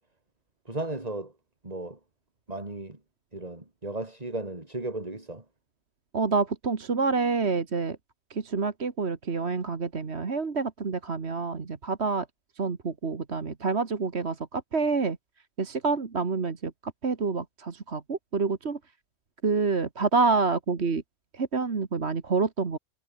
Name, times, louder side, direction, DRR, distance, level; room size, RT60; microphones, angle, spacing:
voice 1, 0.6-1.3 1.6-2.0 2.5-3.0 3.3-5.4, right 2 dB, 30° right, 3.4 m, -35 dB
voice 2, 6.1-8.0 8.3-12.3 12.6-15.2 15.6-16.7 17.0-18.8 19.4-21.0 21.3-22.8, right 4 dB, 60° right, 2.0 m, -27 dB
omnidirectional pair, 1.3 m